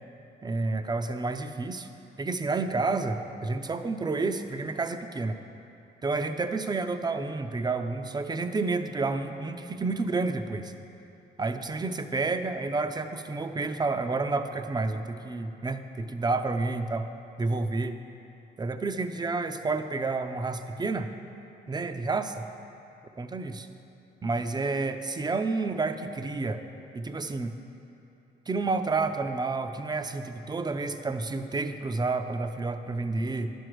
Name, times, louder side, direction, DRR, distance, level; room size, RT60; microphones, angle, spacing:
voice 1, 0.4-1.9 2.2-5.4 6.0-10.7 11.4-17.1 17.4-17.9 18.6-21.1 21.7-22.5 23.2-23.7 24.2-26.6 26.9-27.6 28.5-33.5, right 3 dB, 20° right, 8 dB, 0.5 m, -30 dB
10.5 x 6.2 x 4.8 m, 2.8 s
cardioid pair, 90°, 20 cm